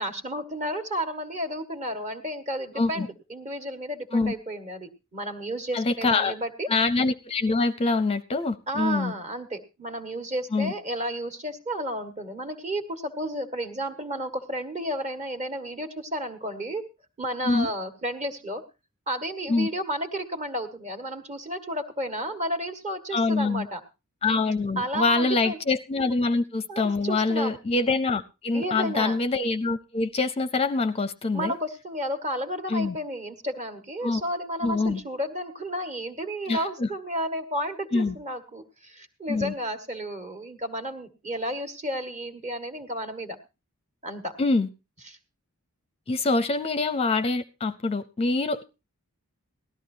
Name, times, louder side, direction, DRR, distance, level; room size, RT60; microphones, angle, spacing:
voice 1, 0.0-6.7 8.7-16.8 17.2-18.6 19.1-23.8 24.7-25.6 26.7-27.6 28.5-29.2 31.3-43.4 44.0-44.3 45.1-45.2, equal, 30° right, 7 dB, 1.7 m, -32 dB
voice 2, 5.7-6.3 6.7-9.1 10.5-10.7 17.4-17.7 19.5-19.7 23.1-23.7 24.2-31.6 32.7-33.0 34.0-34.2 34.6-35.0 36.5-36.9 37.9-38.2 39.3-39.5 44.4-44.7 46.1-48.6, left 3 dB, 25° left, 13 dB, 0.5 m, -25 dB
18.0 x 13.0 x 2.7 m, 0.28 s
head